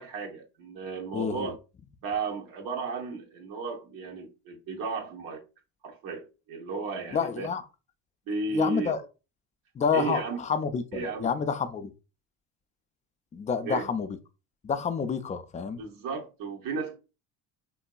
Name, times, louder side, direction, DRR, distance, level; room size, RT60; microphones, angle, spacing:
voice 1, 0.0-1.6 2.0-5.4 5.8-7.5 8.3-8.9 9.9-10.4 10.9-11.3 13.6-13.9 15.8-17.0, right 4 dB, 65° right, 0.9 m, -34 dB
voice 2, 1.1-1.5 7.1-7.6 8.5-9.0 9.8-11.9 13.3-14.1 14.6-15.8, left 6 dB, 20° left, 0.3 m, -29 dB
2.8 x 2.6 x 2.3 m
supercardioid pair, 75°, 37 cm